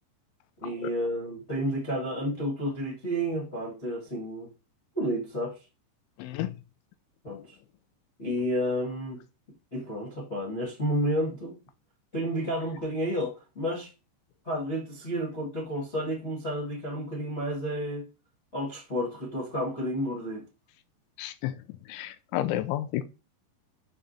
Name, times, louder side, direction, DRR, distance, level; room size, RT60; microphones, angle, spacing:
voice 1, 0.6-4.5 4.9-5.6 7.2-7.6 8.2-9.2 9.7-11.6 12.1-13.9 14.4-18.1 18.5-20.4, equal, 50° left, 0.7 m, -31 dB
voice 2, 6.2-6.5 21.2-21.5 21.9-23.0, left 13 dB, 85° left, 3.0 m, -31 dB
13.0 x 4.8 x 2.8 m
omnidirectional pair, 5.4 m